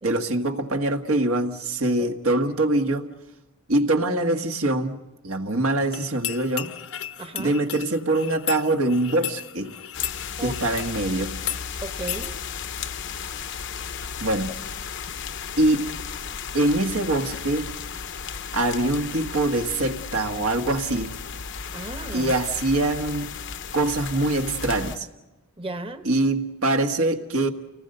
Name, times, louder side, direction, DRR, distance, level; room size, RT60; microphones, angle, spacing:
voice 1, 0.0-3.1 3.7-5.0 5.2-6.7 7.3-9.7 10.4-11.3 14.2-14.5 15.6-15.9 16.5-17.7 18.5-21.1 22.1-23.3 23.7-25.1 26.0-27.5, right 2 dB, 75° right, 1.6 m, -23 dB
sound 1, 5.9-11.0 11.4-11.6 12.1-12.3, left 11 dB, 80° left, 1.1 m, -34 dB
voice 2, 7.2-7.6 10.4-10.6 11.8-12.3 21.7-22.3 25.6-26.1, right 2 dB, 25° right, 1.1 m, -35 dB
sound 2, 9.9-25.0, left 6 dB, 55° left, 0.8 m, -35 dB
29.5 x 19.5 x 6.8 m
head